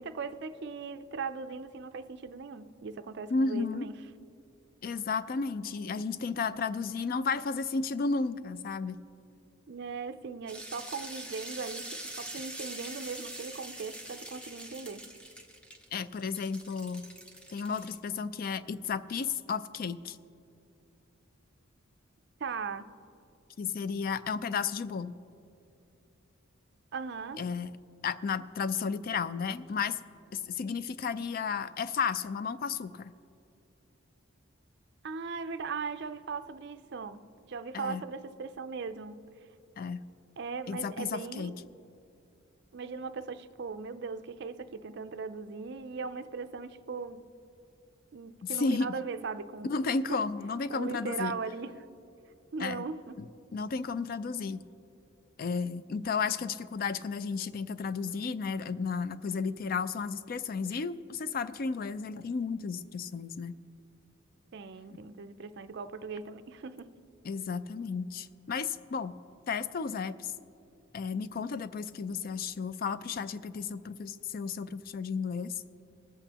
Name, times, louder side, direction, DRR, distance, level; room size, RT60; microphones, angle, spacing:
voice 1, 0.0-3.9 9.7-15.0 22.4-22.9 26.9-27.4 35.0-37.2 37.5-39.2 40.4-41.7 42.7-47.2 48.1-49.7 50.1-50.2 50.7-51.8 52.5-53.1 64.5-66.9, right 5 dB, 55° right, 10 dB, 0.5 m, -39 dB
voice 2, 3.3-3.9 4.8-9.0 15.9-17.1 17.5-20.2 23.6-25.1 27.4-27.7 28.0-30.0 30.3-33.1 37.7-38.0 39.8-40.0 40.7-41.5 48.4-48.9 49.6-51.3 52.6-52.8 53.2-53.3 53.5-54.6 55.4-63.6 67.2-69.2 69.5-70.3 70.9-75.5, left 5 dB, 45° left, 14 dB, 0.3 m, -33 dB
sound 1, 10.5-18.0, right 1 dB, 5° left, 0.7 m, -44 dB
21.5 x 8.1 x 2.9 m, 2.6 s
head